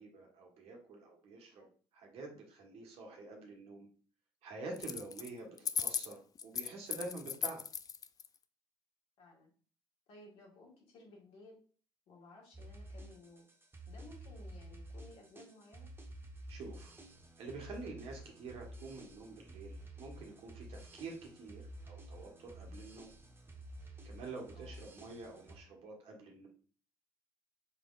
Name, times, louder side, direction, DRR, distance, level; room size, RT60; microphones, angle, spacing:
voice 1, 0.0-1.7 1.9-3.9 4.4-7.6 16.5-16.9 17.4-23.1 24.0-26.5, right 3 dB, 65° right, 0 dB, 1.4 m, -48 dB
sound 1, 4.8-5.3 5.6-8.3, left 7 dB, 35° left, 0.3 m, -37 dB
voice 2, 9.2-9.5 10.1-11.6 12.1-13.5 13.9-15.9 24.5-24.9, left 2 dB, 65° left, -2 dB, 1.7 m, -57 dB
sound 2, 12.5-25.6, right 1 dB, 20° right, 0.9 m, -51 dB
4.8 x 3.5 x 2.4 m, 0.42 s
hypercardioid pair, 55°, 11 cm